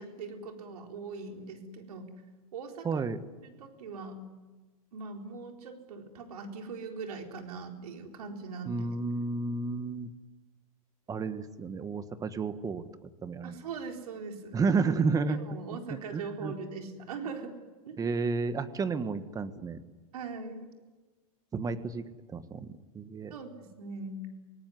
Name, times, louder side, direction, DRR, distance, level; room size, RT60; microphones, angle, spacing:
voice 1, 0.0-2.1 2.5-3.0 3.4-4.2 4.9-8.9 13.4-14.6 15.3-17.6 17.9-18.0 20.1-20.7 23.3-24.3, right 4 dB, 85° right, 3 dB, 4.3 m, -41 dB
voice 2, 2.8-3.2 8.6-10.1 11.1-12.9 13.2-13.5 14.5-15.4 15.9-16.5 18.0-19.8 21.5-22.0 22.3-23.3, right 4 dB, 20° right, 11 dB, 1.5 m, -31 dB
25.5 x 18.5 x 9.6 m, 1.3 s
supercardioid pair, 130°, 19 cm